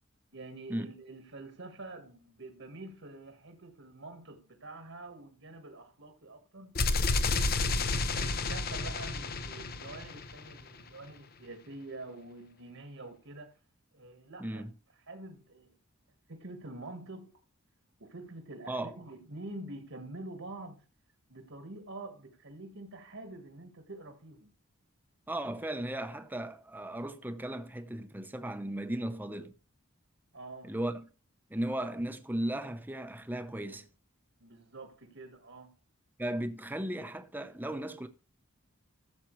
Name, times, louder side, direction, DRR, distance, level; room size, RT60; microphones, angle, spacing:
voice 1, 0.3-6.8 7.2-13.6 13.9-14.7 15.1-15.7 16.3-17.3 18.0-20.8 21.3-24.5 30.3-30.7 34.4-35.7, right 2 dB, 65° right, 1.6 m, -46 dB
sound 1, 6.7-10.6, left 3 dB, 45° left, 0.8 m, -30 dB
voice 2, 14.4-14.7 18.7-19.0 25.3-29.5 30.6-31.1 31.5-33.9 36.2-38.1, right 1 dB, 10° right, 0.8 m, -36 dB
14.5 x 7.4 x 3.2 m
head